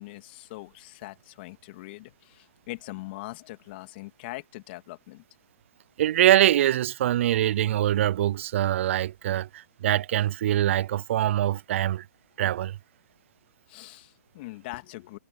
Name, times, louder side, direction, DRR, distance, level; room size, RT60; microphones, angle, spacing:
voice 1, 0.0-5.2 13.7-15.2, left 20 dB, 35° left, 2.4 m, -41 dB
voice 2, 6.0-12.1 12.4-12.8, right 12 dB, 45° right, 0.4 m, -23 dB
hypercardioid pair, 145°, 9 cm